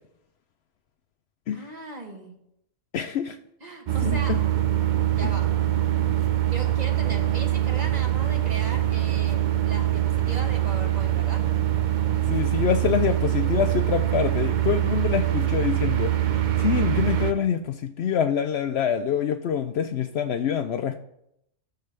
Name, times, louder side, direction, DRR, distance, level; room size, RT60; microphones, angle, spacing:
voice 1, 1.5-2.4 3.6-4.5 5.1-5.6 6.5-11.5, right 1 dB, 35° right, 1 dB, 1.3 m, -38 dB
voice 2, 2.9-3.4 4.0-4.4 5.2-5.3 12.2-16.1 16.6-21.0, left 8 dB, 65° left, 8 dB, 0.7 m, -26 dB
sound 1, 3.9-17.3, right 12 dB, 50° right, 0.6 m, -24 dB
15.0 x 6.6 x 3.3 m, 0.79 s
omnidirectional pair, 1.3 m